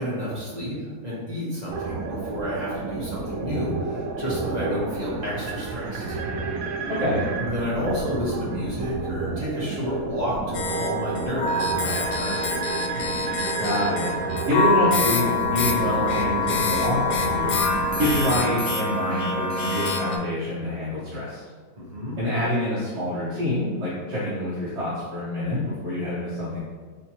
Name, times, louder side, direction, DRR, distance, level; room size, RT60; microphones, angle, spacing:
voice 1, 0.0-6.2 7.4-12.5 21.8-22.2, equal, 35° right, -8 dB, 0.9 m, -30 dB
sound 1, 1.7-18.4, right 4 dB, 85° right, 1.1 m, -31 dB
voice 2, 6.9-7.3 13.6-14.1 14.5-17.6 18.0-21.4 22.2-26.6, left 1 dB, 50° right, -10 dB, 1.2 m, -26 dB
sound 2, 10.5-20.2, left 3 dB, 70° left, 0.7 m, -25 dB
4.4 x 3.4 x 2.8 m, 1.5 s
omnidirectional pair, 1.6 m